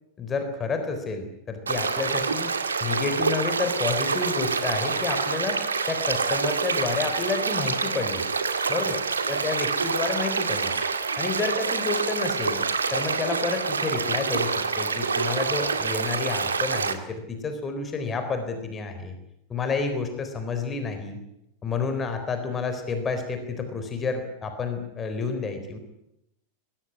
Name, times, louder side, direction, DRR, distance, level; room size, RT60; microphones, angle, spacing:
voice 1, 0.2-2.5 2.8-5.6 5.9-8.2 8.7-9.0 9.3-10.7 11.2-12.6 12.9-19.1 19.5-21.2 21.6-25.8, left 4 dB, 20° left, 7 dB, 4.0 m, -30 dB
sound 1, 1.7-16.9, right 5 dB, 75° right, 2.1 m, -27 dB
24.0 x 17.5 x 9.9 m, 0.83 s
figure-of-eight pair, 90°, 0 cm